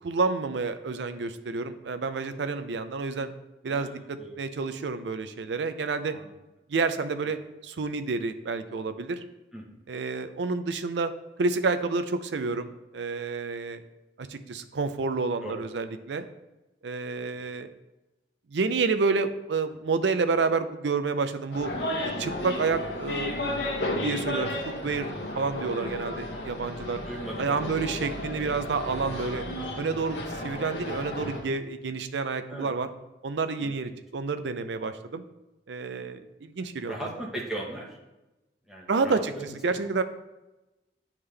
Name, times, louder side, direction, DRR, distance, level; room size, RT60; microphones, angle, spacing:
voice 1, 0.0-3.3 3.6-6.2 6.7-9.2 9.9-11.1 11.4-13.8 14.2-16.3 16.8-17.7 18.5-21.7 22.2-23.3 24.0-24.5 24.8-27.0 27.4-29.4 29.8-32.9 33.2-35.2 35.7-37.0 38.9-39.3 39.6-40.0, right 4 dB, 75° right, 10 dB, 0.5 m, -29 dB
voice 2, 3.7-4.3 6.1-6.3 9.5-9.6 15.4-15.6 26.3-26.5 27.1-27.7 32.5-32.7 33.6-33.9 36.8-38.0 38.7-39.8, right 1 dB, ahead, -4 dB, 1.1 m, -38 dB
sound 1, 21.5-31.4, left 1 dB, 75° left, 1.0 m, -33 dB
9.6 x 3.6 x 3.3 m, 1.0 s
head